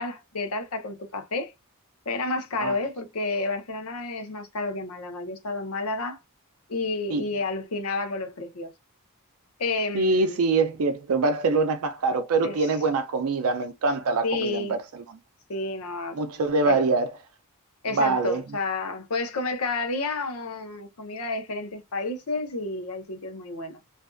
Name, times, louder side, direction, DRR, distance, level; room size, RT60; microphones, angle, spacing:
voice 1, 0.0-1.5 2.1-6.2 6.7-8.7 9.6-10.5 12.4-12.7 14.2-14.8 15.5-16.2 16.6-16.8 17.8-23.8, left 3 dB, 85° left, 0.8 m, -30 dB
voice 2, 9.9-14.8 16.2-17.1 17.9-18.4, right 3 dB, 75° right, 0.4 m, -24 dB
2.5 x 2.4 x 2.3 m
head